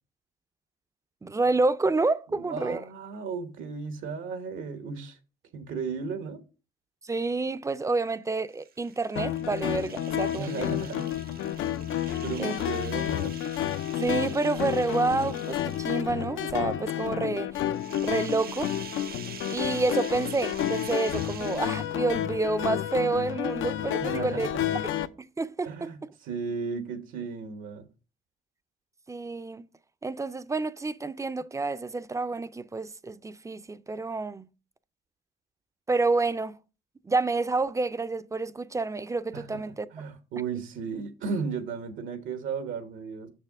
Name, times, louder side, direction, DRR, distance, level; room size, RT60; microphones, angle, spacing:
voice 1, 1.2-2.8 7.0-10.7 12.4-12.6 14.0-17.5 18.0-18.7 19.5-24.5 25.2-25.9 29.1-29.6 30.0-34.5 35.9-36.6 37.0-39.9, right 3 dB, 15° right, 0.4 m, -28 dB
voice 2, 2.3-5.2 5.5-6.4 10.4-11.1 11.4-11.6 12.2-13.4 24.0-24.8 25.6-27.9 39.3-43.3, right 5 dB, 85° right, 1.1 m, -35 dB
sound 1, 8.5-16.2 17.7-22.1, right 7 dB, 50° right, 0.7 m, -46 dB
sound 2, 9.2-25.1, left 11 dB, 80° left, 0.5 m, -30 dB
6.7 x 6.4 x 3.5 m
cardioid pair, 90°, 20 cm